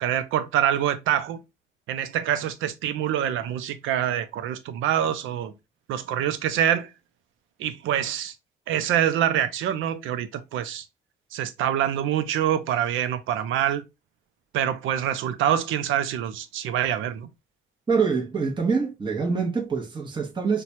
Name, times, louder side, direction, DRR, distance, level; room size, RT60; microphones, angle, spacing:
voice 1, 0.0-1.4 1.9-5.5 5.9-6.9 7.6-8.3 8.7-10.9 11.3-13.8 14.5-17.3, right 10 dB, 85° right, 0.5 m, -25 dB
voice 2, 17.9-20.6, right 5 dB, 25° right, 0.8 m, -25 dB
4.3 x 2.2 x 2.6 m
cardioid pair, 90°, 20 cm